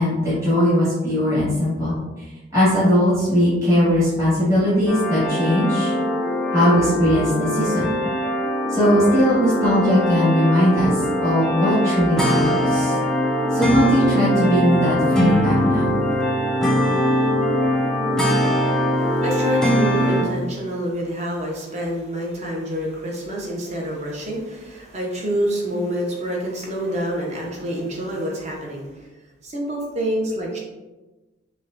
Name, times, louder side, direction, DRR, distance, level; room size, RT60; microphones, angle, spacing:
voice 1, 0.0-1.9 2.5-5.9 6.5-8.0 8.7-10.9 11.2-13.0 13.5-15.9, equal, 15° right, -11 dB, 1.3 m, -19 dB
sound 1, 4.9-20.2, equal, 5° left, 0.5 m, -21 dB
voice 2, 18.9-29.1 29.4-30.6, equal, 35° right, -2 dB, 0.8 m, -27 dB
5.7 x 2.2 x 2.5 m, 1.2 s
head